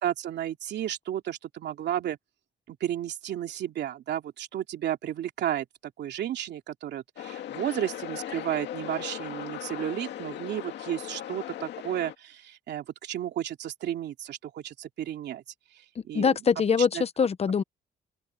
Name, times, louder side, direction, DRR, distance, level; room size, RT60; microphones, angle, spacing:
voice 1, 0.0-2.2 2.7-15.4 16.0-16.6 16.9-17.0, right 11 dB, 75° right, 2.8 m, -33 dB
sound 1, 7.2-12.1, left 11 dB, 80° left, 2.1 m, -38 dB
voice 2, 16.1-17.6, left 6 dB, 35° left, 0.8 m, -23 dB
cardioid pair, 110°, 18 cm